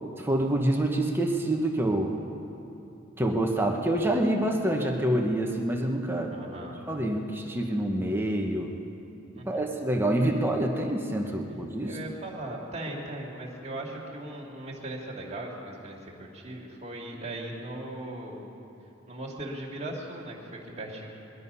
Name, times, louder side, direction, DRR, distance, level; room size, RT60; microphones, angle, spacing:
voice 1, 0.2-2.2 3.2-6.3 6.9-8.7 9.4-12.0, right 1 dB, 10° right, 1 dB, 1.0 m, -27 dB
voice 2, 6.3-6.8 9.4-9.7 11.8-18.4 19.1-21.1, right 1 dB, 35° right, -3 dB, 2.4 m, -38 dB
21.0 x 12.0 x 5.5 m, 2.9 s
head